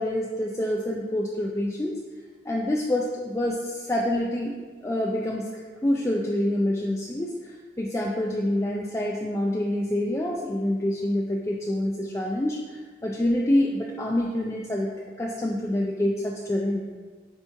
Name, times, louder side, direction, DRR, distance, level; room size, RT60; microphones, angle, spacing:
voice 1, 0.0-2.0 2.5-4.6 4.8-5.5 5.8-14.9 15.2-16.9, left 1 dB, 15° left, -1 dB, 0.4 m, -26 dB
8.1 x 3.0 x 4.4 m, 1.5 s
head